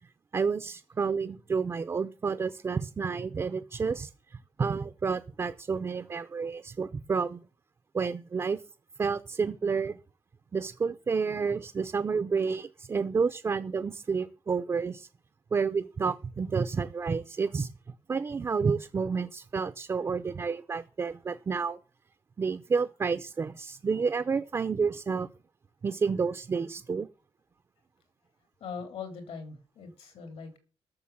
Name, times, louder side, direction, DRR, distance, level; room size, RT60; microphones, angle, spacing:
voice 1, 0.3-4.1 4.6-7.4 7.9-8.6 9.0-10.0 10.5-15.1 15.5-17.7 18.1-21.8 22.4-25.3 25.8-27.1, right 5 dB, 25° right, 0.5 m, -30 dB
voice 2, 28.6-30.6, left 5 dB, 70° left, 3.3 m, -41 dB
12.5 x 6.9 x 7.2 m
wide cardioid pair, 170°, 10 cm